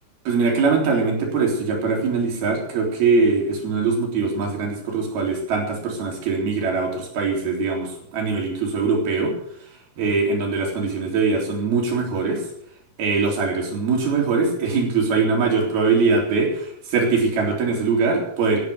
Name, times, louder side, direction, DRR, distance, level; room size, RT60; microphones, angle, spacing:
voice 1, 0.3-9.3 10.0-12.4 13.0-18.6, right 4 dB, 85° right, 1 dB, 5.6 m, -22 dB
17.0 x 10.5 x 7.0 m, 0.70 s
omnidirectional pair, 4.3 m